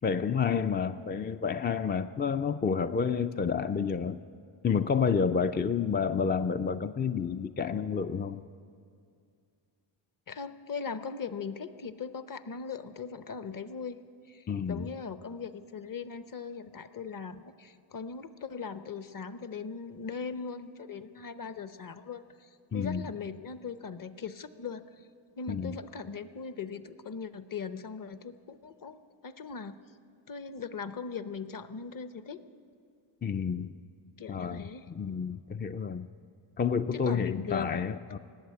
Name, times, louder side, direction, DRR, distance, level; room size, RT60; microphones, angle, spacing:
voice 1, 0.0-4.2 4.6-8.4 14.5-14.9 22.7-23.1 25.5-25.7 33.2-33.8 34.3-36.1 36.6-38.2, left 6 dB, 25° left, 9 dB, 0.3 m, -29 dB
voice 2, 10.3-14.0 14.3-25.1 25.4-29.8 30.3-32.4 34.2-34.9 36.9-37.9, left 5 dB, 40° left, 12 dB, 0.8 m, -39 dB
18.5 x 8.1 x 9.5 m, 2.3 s
cardioid pair, 85°, 49 cm